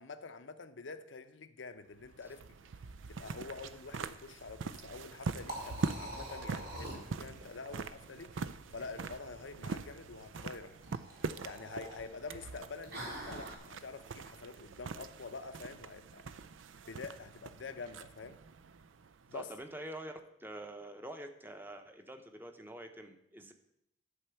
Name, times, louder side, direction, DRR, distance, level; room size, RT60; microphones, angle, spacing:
voice 1, 0.0-2.6 3.1-10.9 11.2-16.3 16.9-18.4 19.3-19.5, left 4 dB, 70° left, 0.7 m, -47 dB
sound 1, 1.9-19.6, right 4 dB, 80° right, 0.5 m, -43 dB
Liquid, 4.9-13.6, right 1 dB, 55° right, 2.7 m, -47 dB
voice 2, 19.3-23.5, right 1 dB, 10° right, 0.8 m, -46 dB
12.0 x 4.4 x 6.9 m
head